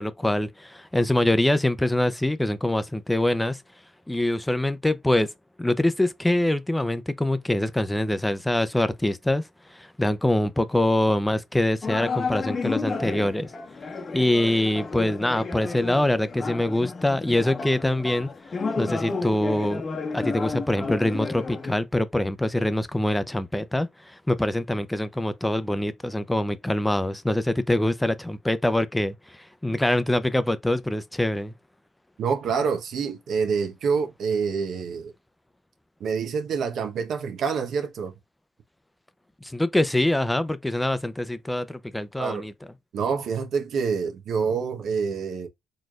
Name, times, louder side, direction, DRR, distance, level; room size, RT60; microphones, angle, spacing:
voice 1, 0.0-3.6 4.1-5.3 5.6-9.4 9.7-13.5 14.1-18.3 18.8-19.8 20.1-31.5 39.4-42.5, left 1 dB, 5° left, 0.6 m, -24 dB
sound 1, 11.8-21.7, left 4 dB, 40° left, 0.9 m, -32 dB
voice 2, 32.2-35.1 36.0-38.1 42.2-42.5 42.9-45.5, right 6 dB, 65° right, 1.0 m, -27 dB
4.2 x 3.2 x 2.4 m
cardioid pair, 90°, 0 cm